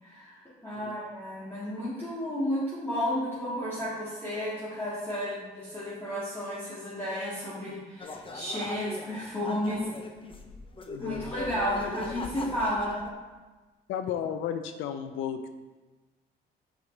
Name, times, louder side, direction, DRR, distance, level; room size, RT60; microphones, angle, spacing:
voice 1, 0.0-9.8 11.0-13.0, equal, 10° left, -11 dB, 1.8 m, -32 dB
sound 1, 8.0-9.1 9.4-13.1, left 2 dB, 25° left, 0.6 m, -40 dB
voice 2, 10.9-11.3 13.9-15.5, left 8 dB, 85° left, 8 dB, 0.4 m, -33 dB
6.0 x 5.0 x 3.2 m, 1.3 s
cardioid pair, 90°, 20 cm